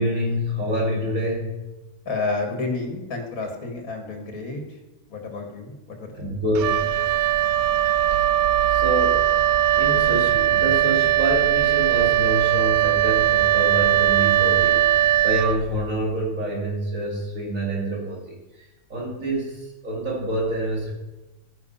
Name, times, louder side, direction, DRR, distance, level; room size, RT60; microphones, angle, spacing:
voice 1, 0.0-1.6 6.2-6.8 8.7-9.2 9.8-18.4 18.9-19.5 19.8-20.9, right 1 dB, 60° right, -2 dB, 3.3 m, -26 dB
voice 2, 2.1-4.6 5.1-6.3, left 3 dB, 65° left, 3 dB, 2.3 m, -30 dB
Wind instrument woodwind instrument, 6.5-16.0, right 12 dB, 75° right, 1.1 m, -20 dB
13.5 x 10.5 x 5.7 m, 1.0 s
omnidirectional pair, 1.6 m